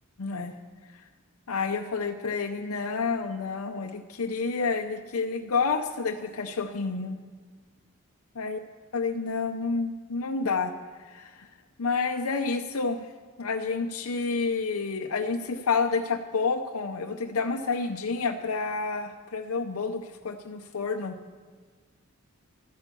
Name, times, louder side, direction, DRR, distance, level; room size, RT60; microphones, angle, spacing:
voice 1, 0.2-0.5 0.9-1.0 1.5-7.2 8.3-8.6 8.9-10.7 11.0-11.5 11.8-13.1 13.4-21.1, left 4 dB, 80° left, 4 dB, 0.7 m, -29 dB
12.5 x 10.5 x 6.9 m, 1.5 s
head